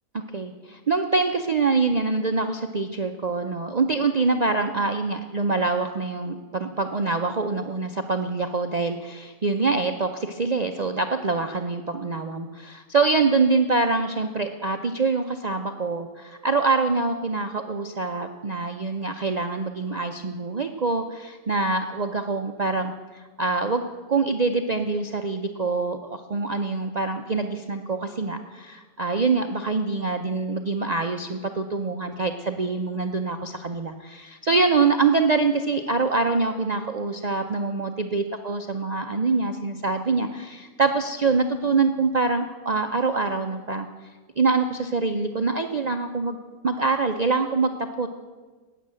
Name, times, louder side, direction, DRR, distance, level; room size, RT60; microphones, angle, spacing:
voice 1, 0.3-43.9 44.4-46.4 46.6-48.1, right 4 dB, 80° right, 5 dB, 0.3 m, -25 dB
13.0 x 9.4 x 7.6 m, 1.4 s
omnidirectional pair, 1.7 m